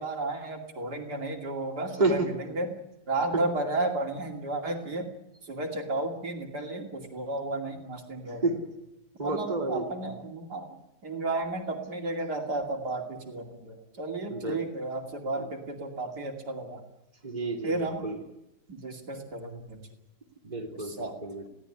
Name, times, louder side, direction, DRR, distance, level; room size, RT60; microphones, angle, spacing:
voice 1, 0.0-2.7 3.1-5.1 5.4-8.4 9.2-10.8 11.0-16.8 17.6-18.0 18.7-19.8 20.8-21.2, right 2 dB, 65° right, 3 dB, 3.2 m, -33 dB
voice 2, 9.2-9.9 14.3-14.6 17.2-18.2 20.4-21.5, right 2 dB, 25° right, 1 dB, 3.1 m, -29 dB
22.5 x 16.5 x 9.8 m, 0.91 s
omnidirectional pair, 1.9 m